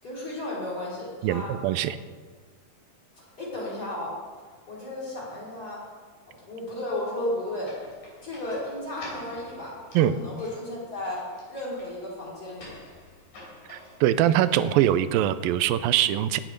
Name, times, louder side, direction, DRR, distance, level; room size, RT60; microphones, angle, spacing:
voice 1, 0.0-1.5 3.1-4.1 4.7-5.8 6.4-7.8 8.2-12.8, left 1 dB, 25° left, -6 dB, 5.2 m, -34 dB
voice 2, 1.2-2.0 9.9-10.1 13.7-16.4, right 11 dB, 80° right, 13 dB, 2.3 m, -23 dB
sound 1, 7.6-15.3, left 1 dB, 55° left, 4.9 m, -49 dB
16.5 x 10.0 x 5.3 m, 1.5 s
omnidirectional pair, 4.3 m